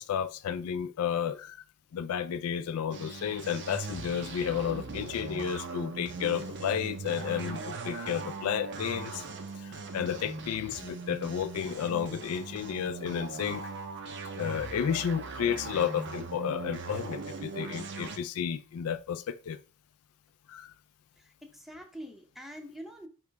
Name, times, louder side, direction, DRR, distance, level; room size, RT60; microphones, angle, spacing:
voice 1, 0.0-1.6 1.9-9.2 9.6-13.6 14.4-19.6 20.5-20.7, left 8 dB, 80° left, 0.3 m, -32 dB
sound 1, 2.9-18.2, right 4 dB, 55° right, 0.7 m, -40 dB
voice 2, 21.2-23.1, equal, ahead, 0.6 m, -45 dB
4.9 x 3.2 x 3.4 m
head